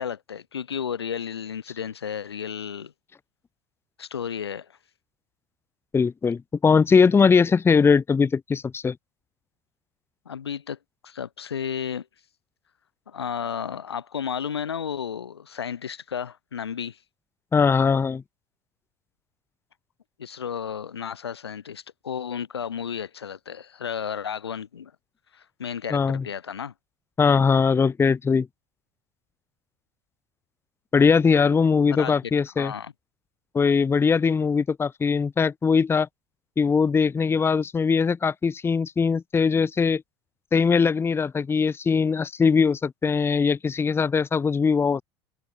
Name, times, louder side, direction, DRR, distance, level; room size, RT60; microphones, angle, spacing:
voice 1, 0.0-2.9 4.0-4.7 10.3-10.8 11.0-12.1 13.1-17.0 20.2-24.9 25.3-26.7 32.0-32.1 32.6-32.9, left 7 dB, 85° left, 2.3 m, -33 dB
voice 2, 5.9-9.0 17.5-18.2 25.9-26.2 27.2-28.5 30.9-32.7 33.5-36.1 36.6-40.0 40.5-45.0, left 5 dB, 20° left, 0.6 m, -21 dB
open air
hypercardioid pair, 75°, 13 cm